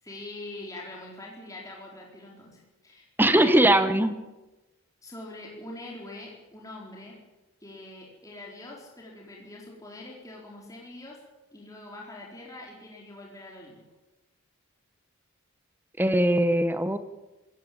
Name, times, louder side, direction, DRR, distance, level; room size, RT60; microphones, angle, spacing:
voice 1, 0.0-4.1 5.0-7.2 7.6-11.2 11.5-13.8, left 2 dB, 15° left, -2 dB, 4.2 m, -43 dB
voice 2, 3.2-4.1 16.0-17.0, right 1 dB, 10° right, 11 dB, 1.1 m, -21 dB
25.5 x 16.0 x 8.7 m, 1.1 s
head